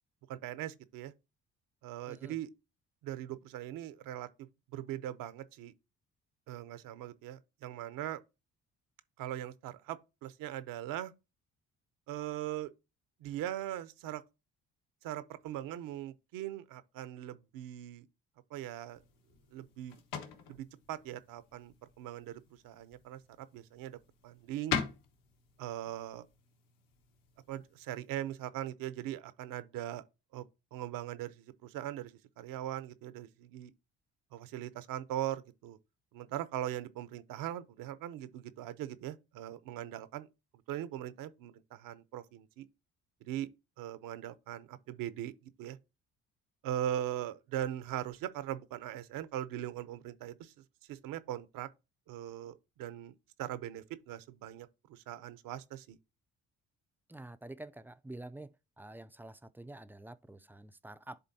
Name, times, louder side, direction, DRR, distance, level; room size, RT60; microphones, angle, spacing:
voice 1, 0.3-1.1 1.8-2.5 3.0-4.3 4.7-5.7 6.5-8.2 9.2-11.1 12.1-12.7 13.2-14.2 15.0-18.1 18.5-19.0 19.5-20.0 20.5-24.0 24.2-24.8 25.6-26.3 27.5-30.0 30.3-30.4 30.7-33.7 34.3-35.8 36.1-40.3 40.7-42.7 43.2-43.5 43.8-45.3 45.6-45.8 46.6-50.5 50.9-51.7 52.1-56.0, right 12 dB, 75° right, 0.7 m, -40 dB
sound 1, 18.9-28.1, left 7 dB, 70° left, 1.2 m, -43 dB
voice 2, 57.1-58.5 58.8-61.2, right 2 dB, 5° right, 0.3 m, -48 dB
10.5 x 3.7 x 2.7 m
supercardioid pair, 70°, 34 cm